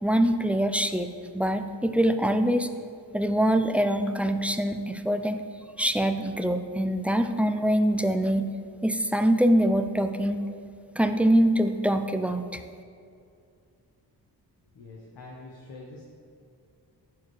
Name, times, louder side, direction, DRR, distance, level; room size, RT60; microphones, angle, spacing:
voice 1, 0.0-1.1 1.3-2.7 3.1-5.4 5.8-8.5 8.8-10.4 10.9-12.6, right 1 dB, 5° right, 7 dB, 0.4 m, -24 dB
voice 2, 14.7-16.0, left 2 dB, 60° left, -3 dB, 1.2 m, -45 dB
12.0 x 4.6 x 3.2 m, 2.4 s
supercardioid pair, 45°, 44 cm